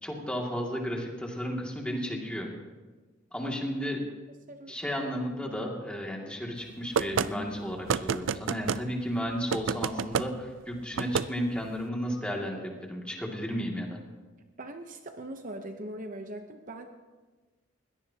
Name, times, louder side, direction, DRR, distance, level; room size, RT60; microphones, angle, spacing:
voice 1, 0.0-2.5 3.3-4.0 4.7-14.0, equal, 5° left, -1 dB, 2.3 m, -33 dB
voice 2, 4.5-4.8 5.4-5.6 14.6-16.9, right 1 dB, 45° right, 6 dB, 0.8 m, -41 dB
sound 1, 6.9-7.3 7.9-8.8 9.5-10.3 11.0-11.3, right 6 dB, 85° right, 0.4 m, -28 dB
21.5 x 17.5 x 2.9 m, 1.3 s
head